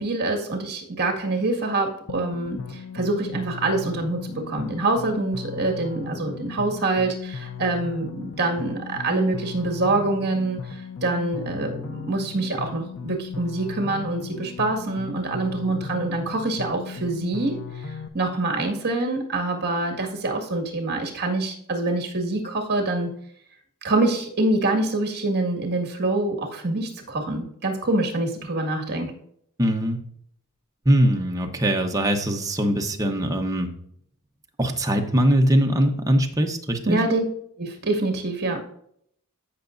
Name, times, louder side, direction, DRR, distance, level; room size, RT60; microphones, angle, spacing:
voice 1, 0.0-23.1 23.8-29.1 36.8-37.2 37.6-38.6, right 2 dB, 50° right, 2 dB, 2.0 m, -25 dB
sound 1, 2.1-18.1, left 6 dB, 65° left, 0.5 m, -36 dB
voice 2, 29.6-30.0 30.8-33.7 34.6-37.0, right 1 dB, 15° right, 2 dB, 1.0 m, -21 dB
15.0 x 5.9 x 2.6 m, 0.68 s
head